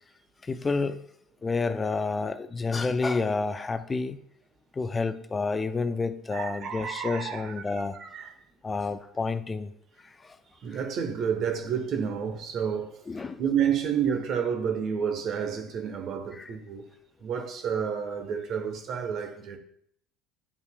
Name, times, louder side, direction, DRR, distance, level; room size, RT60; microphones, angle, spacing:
voice 1, 0.4-1.0 1.4-4.2 4.7-8.0 8.6-9.7 10.0-10.4 10.7-10.8 13.1-13.4 16.3-16.5, left 4 dB, 25° left, 0.5 m, -29 dB
voice 2, 6.3-8.3 10.6-16.9 17.2-19.6, right 7 dB, 50° right, 1.0 m, -30 dB
9.7 x 5.4 x 2.2 m
hypercardioid pair, 70°, 0 cm